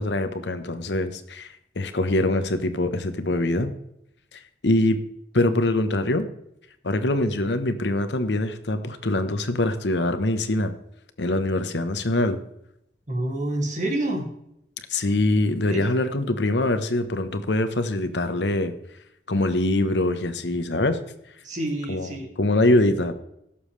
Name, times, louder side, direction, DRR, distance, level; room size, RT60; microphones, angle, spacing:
voice 1, 0.0-1.5 1.8-3.7 4.6-5.0 5.3-6.3 6.8-10.7 11.2-12.4 14.9-18.7 19.3-21.0 21.9-22.1 22.4-23.1, left 1 dB, 80° left, 9 dB, 1.1 m, -23 dB
voice 2, 13.1-14.3 15.7-15.8 21.4-22.3, right 1 dB, 45° right, 0 dB, 2.5 m, -27 dB
17.0 x 7.1 x 3.3 m, 0.79 s
head